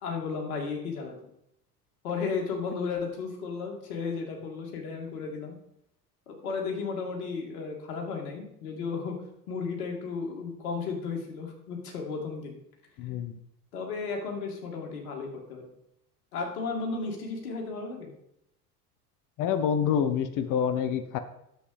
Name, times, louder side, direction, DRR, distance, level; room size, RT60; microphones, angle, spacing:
voice 1, 0.0-1.2 2.0-5.6 6.3-9.2 9.5-12.6 13.7-15.7 16.3-18.1, left 4 dB, 65° left, 1 dB, 2.7 m, -34 dB
voice 2, 13.0-13.4 19.4-21.2, left 8 dB, 45° left, 10 dB, 1.2 m, -27 dB
10.0 x 7.7 x 5.0 m, 0.78 s
figure-of-eight pair, 70°, 46 cm